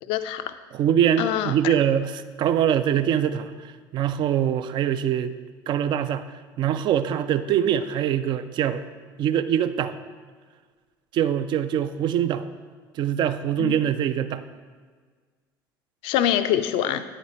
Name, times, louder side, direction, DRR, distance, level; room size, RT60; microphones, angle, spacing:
voice 1, 0.0-0.5 1.2-1.7 13.6-13.7 16.0-17.0, left 11 dB, 55° left, 11 dB, 0.4 m, -25 dB
voice 2, 0.7-5.3 5.7-6.3 6.6-8.8 9.2-10.0 11.1-12.5 12.9-14.4, right 9 dB, 45° right, 12 dB, 0.4 m, -23 dB
8.8 x 5.1 x 4.2 m, 1.6 s
figure-of-eight pair, 60°, 11 cm